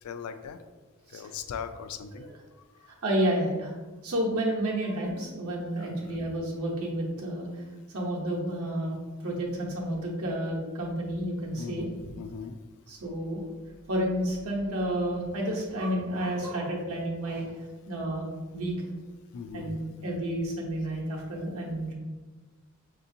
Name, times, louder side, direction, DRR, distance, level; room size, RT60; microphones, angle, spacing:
voice 1, 0.0-0.6 1.1-2.3 5.7-6.2 11.5-12.5 19.3-19.8, left 6 dB, 80° left, 9 dB, 0.4 m, -39 dB
voice 2, 2.9-3.7 4.0-7.5 7.9-11.9 12.9-13.4 13.9-17.6 17.9-18.3 18.5-18.9 19.5-21.9, right 1 dB, 85° right, -2 dB, 0.9 m, -30 dB
5.8 x 2.7 x 2.7 m, 1.3 s
head